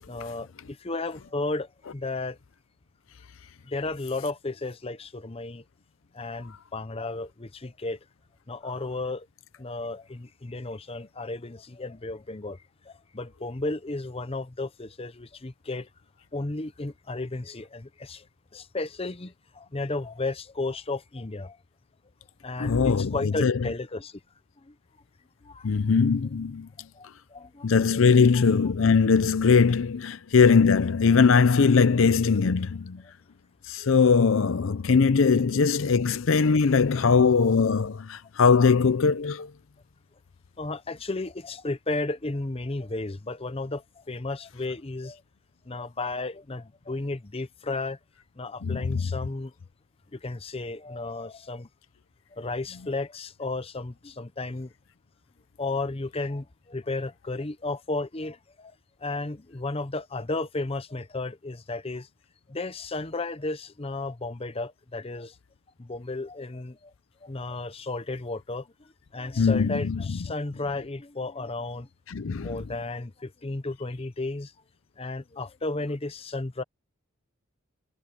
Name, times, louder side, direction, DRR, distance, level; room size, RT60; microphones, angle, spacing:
voice 1, 0.1-2.4 3.6-5.6 6.1-8.0 8.5-9.3 9.6-15.9 16.3-18.3 18.5-21.6 22.4-24.2 24.6-24.7 25.4-25.7 26.9-28.5 30.6-30.7 33.0-33.1 35.9-36.0 40.6-45.2 45.7-48.0 48.4-49.5 50.1-51.7 52.3-54.7 55.6-62.1 62.5-65.4 65.8-66.9 67.2-71.9 72.4-74.5 75.0-76.6, left 2 dB, 30° left, 0.8 m, -34 dB
voice 2, 22.6-23.6 25.6-26.7 27.6-33.0 33.7-39.5 48.6-49.0 69.4-70.0 72.1-72.6, left 5 dB, 65° left, 0.5 m, -21 dB
head